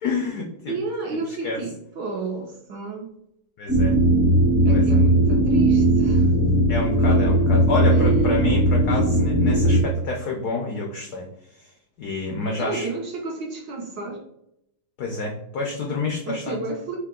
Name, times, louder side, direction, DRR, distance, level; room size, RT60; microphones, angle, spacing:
voice 1, 0.0-0.7 1.3-1.6 3.6-4.0 4.7-5.0 6.7-11.7 12.0-12.9 15.0-16.6, left 3 dB, 80° left, 0 dB, 0.8 m, -28 dB
voice 2, 0.7-3.1 4.6-6.3 12.6-14.2 16.3-17.0, right 3 dB, 70° right, 0 dB, 1.2 m, -31 dB
sound 1, 3.7-9.8, right 1 dB, 40° right, 1.1 m, -18 dB
3.7 x 2.8 x 3.6 m, 0.79 s
omnidirectional pair, 2.4 m